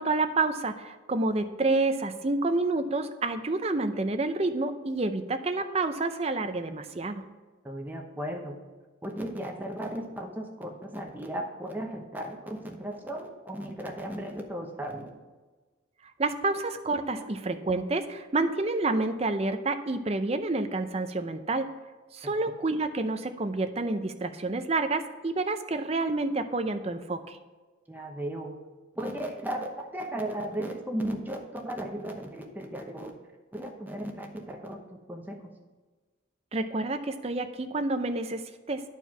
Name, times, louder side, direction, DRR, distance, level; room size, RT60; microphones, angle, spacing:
voice 1, 0.0-7.2 16.2-21.7 22.1-27.4 36.5-38.8, right 2 dB, 30° right, 9 dB, 0.5 m, -29 dB
voice 2, 7.6-8.6 9.0-15.1 17.1-17.2 22.2-22.3 27.9-28.5 29.0-33.1 33.5-35.4, right 1 dB, 10° right, 2 dB, 0.9 m, -36 dB
11.0 x 4.5 x 5.8 m, 1.3 s
head